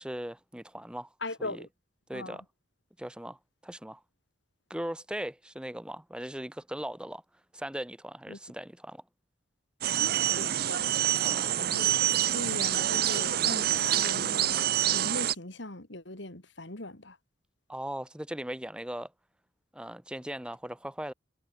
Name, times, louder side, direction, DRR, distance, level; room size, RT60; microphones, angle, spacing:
voice 1, 0.0-1.1 1.4-1.6 2.1-2.4 3.0-3.4 3.6-4.0 4.7-7.2 7.5-9.0 11.2-11.7 17.7-19.1 19.7-21.1, right 1 dB, 5° right, 0.7 m, -39 dB
voice 2, 1.2-1.7 2.1-2.4 8.3-8.4 10.2-11.1 11.6-17.2, left 2 dB, 70° left, 3.6 m, -40 dB
sound 1, 9.8-15.3, right 12 dB, 50° right, 0.5 m, -27 dB
head